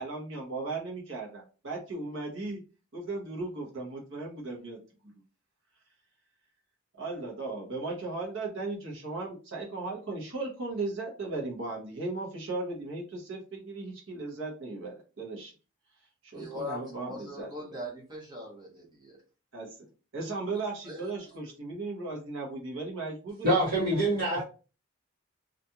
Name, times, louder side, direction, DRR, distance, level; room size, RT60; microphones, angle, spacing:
voice 1, 0.0-2.6 2.9-4.8 7.0-15.5 16.2-17.8 19.5-19.8 20.1-23.6 23.9-24.0 24.3-24.4, right 3 dB, 60° right, 0.9 m, -36 dB
voice 2, 16.3-19.2 20.9-21.0, left 1 dB, 20° right, 0.9 m, -40 dB
voice 3, 23.4-24.4, right 1 dB, 40° right, 1.1 m, -25 dB
2.8 x 2.4 x 2.2 m
head